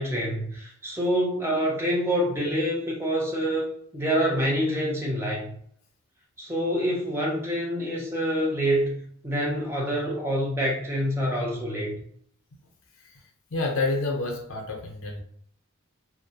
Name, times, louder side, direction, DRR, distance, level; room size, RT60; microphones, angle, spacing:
voice 1, 0.0-3.7 3.9-5.5 6.4-11.9, equal, 10° right, -3 dB, 0.6 m, -26 dB
voice 2, 13.5-15.2, left 3 dB, 85° left, 1 dB, 0.6 m, -28 dB
2.3 x 2.1 x 2.7 m, 0.63 s
head